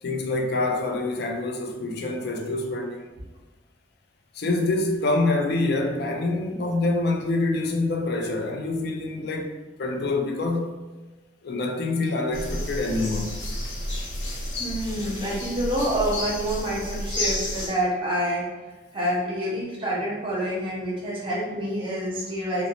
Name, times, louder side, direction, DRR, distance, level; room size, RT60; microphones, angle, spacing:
voice 1, 0.0-3.1 4.3-9.5 9.8-10.8 11.4-13.3, left 2 dB, 60° left, 0.4 m, -26 dB
sound 1, 12.3-17.7, left 1 dB, 85° left, 0.9 m, -31 dB
voice 2, 14.4-18.4 18.9-22.7, equal, 30° right, 0.7 m, -27 dB
2.6 x 2.0 x 2.9 m
head